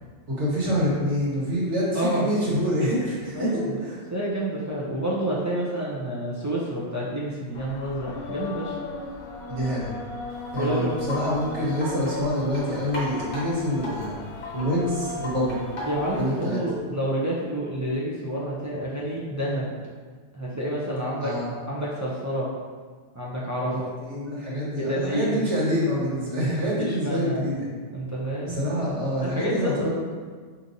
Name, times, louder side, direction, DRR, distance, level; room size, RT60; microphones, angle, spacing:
voice 1, 0.3-3.5 3.8-3.9 9.5-9.9 10.5-14.1 14.5-15.6 16.1-16.6 21.2-21.5 23.6-23.8 24.1-27.7 28.4-29.9, equal, 75° right, -6 dB, 1.5 m, -26 dB
voice 2, 1.9-2.3 3.3-3.8 4.1-8.8 10.6-11.0 15.9-19.7 20.3-21.4 21.7-22.5 23.1-23.9 24.7-25.4 26.6-27.4 27.9-28.6 29.2-29.9, right 1 dB, 30° right, -7 dB, 0.3 m, -29 dB
sound 1, 7.5-16.2, left 3 dB, 70° left, 0.8 m, -37 dB
Wind chime, 10.3-16.5, left 1 dB, 50° left, 1.2 m, -38 dB
5.0 x 2.8 x 2.6 m, 1.5 s
omnidirectional pair, 1.2 m